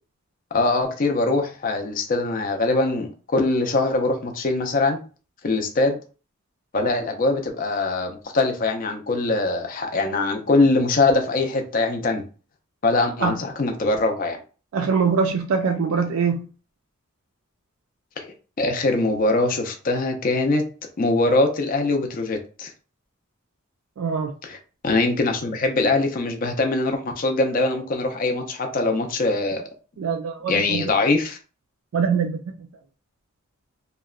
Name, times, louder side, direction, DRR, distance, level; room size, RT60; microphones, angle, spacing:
voice 1, 0.5-5.0 5.4-6.0 6.7-12.2 12.8-14.4 18.2-18.3 18.6-20.7 21.0-22.7 24.4-24.6 24.8-29.6 30.5-31.4, left 2 dB, 40° left, 0.4 m, -22 dB
voice 2, 14.7-16.5 24.0-24.3 30.0-30.9 31.9-32.7, right 5 dB, 70° right, 0.3 m, -23 dB
2.8 x 2.1 x 2.3 m
head